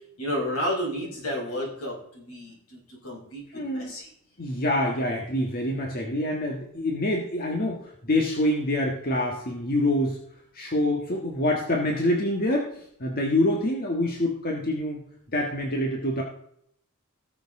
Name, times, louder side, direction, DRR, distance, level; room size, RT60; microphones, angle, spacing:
voice 1, 0.2-2.8 3.0-4.1, equal, 80° left, -2 dB, 5.2 m, -31 dB
voice 2, 3.5-3.9 4.4-10.2 10.5-15.0 15.3-16.2, left 1 dB, 40° left, 0 dB, 1.6 m, -26 dB
17.5 x 6.9 x 3.8 m, 0.68 s
head